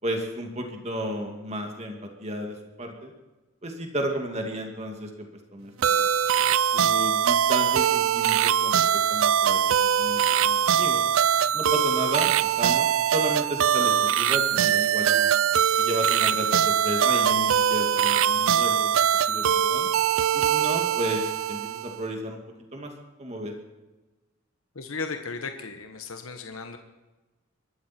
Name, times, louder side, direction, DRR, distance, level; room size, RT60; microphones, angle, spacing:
voice 1, 0.0-3.1 3.6-6.1 6.7-8.8 9.1-11.0 11.5-15.3 15.8-18.9 19.3-19.9 20.3-22.4 22.7-22.9 23.2-23.5, equal, 30° right, 2 dB, 2.3 m, -33 dB
sound 1, 5.8-22.0, right 9 dB, 70° right, 0.4 m, -22 dB
voice 2, 24.7-26.8, left 4 dB, 70° left, 6 dB, 1.2 m, -35 dB
23.0 x 12.5 x 4.4 m, 1.1 s
head